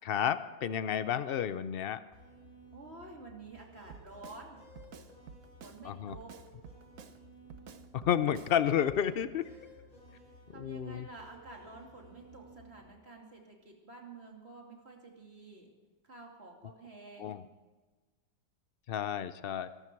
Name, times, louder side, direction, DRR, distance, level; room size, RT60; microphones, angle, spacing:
voice 1, 0.0-2.0 5.8-6.2 7.9-9.5 10.5-11.1 17.2-17.4 18.9-19.7, left 9 dB, 80° left, 13 dB, 0.5 m, -31 dB
sound 1, 2.1-12.9, right 1 dB, 25° left, 5.0 m, -56 dB
voice 2, 2.7-4.6 5.6-6.3 9.5-9.6 10.5-15.7 16.1-17.4, right 2 dB, 35° right, 0 dB, 2.9 m, -50 dB
Drum kit, 3.9-4.4 4.8-5.8 6.1-7.2 7.5-8.5 8.9-9.0, right 6 dB, 55° right, 1.3 m, -50 dB
21.5 x 13.0 x 4.7 m, 1.3 s
omnidirectional pair, 1.8 m